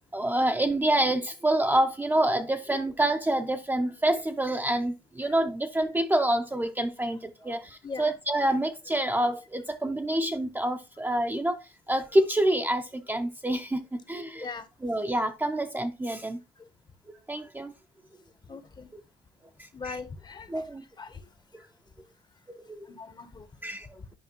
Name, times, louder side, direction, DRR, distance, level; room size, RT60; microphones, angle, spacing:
voice 1, 0.0-13.8 14.1-14.5 14.8-16.4 17.3-17.7 19.6-20.0 20.5-20.8 22.5-22.8 23.6-23.9, right 1 dB, 10° right, 0.6 m, -27 dB
voice 2, 18.5-18.9 19.7-20.7 21.0-21.3 22.8-24.1, left 4 dB, 25° left, 0.8 m, -41 dB
9.8 x 5.2 x 2.9 m
cardioid pair, 110°, 17 cm